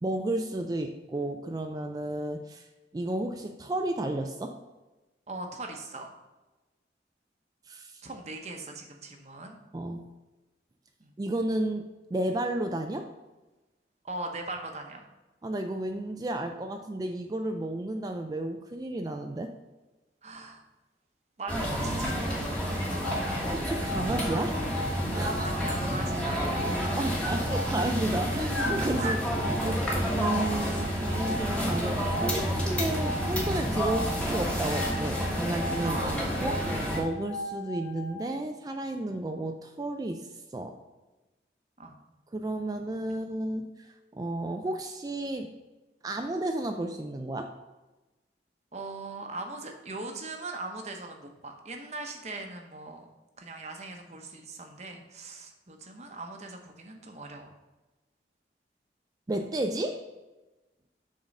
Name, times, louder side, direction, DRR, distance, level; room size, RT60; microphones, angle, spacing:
voice 1, 0.0-2.7 2.9-4.6 7.7-8.0 9.7-10.1 11.2-13.1 15.4-19.5 23.5-24.7 25.1-25.4 27.0-29.2 29.4-36.0 36.4-40.8 42.3-45.5 46.0-47.5 59.3-60.0, right 1 dB, 20° right, 5 dB, 0.3 m, -32 dB
voice 2, 5.3-6.1 8.0-9.6 11.0-11.1 14.0-15.1 20.2-20.6 21.4-22.4 25.4-27.1 29.0-29.2 35.8-36.2 41.8-42.0 48.7-53.1 53.4-57.5, right 2 dB, 40° right, 3 dB, 0.9 m, -40 dB
sound 1, 21.5-37.0, equal, 5° left, 1.3 m, -29 dB
sound 2, 22.5-38.3, left 1 dB, 65° left, 2.2 m, -39 dB
7.0 x 3.9 x 5.3 m, 1.1 s
head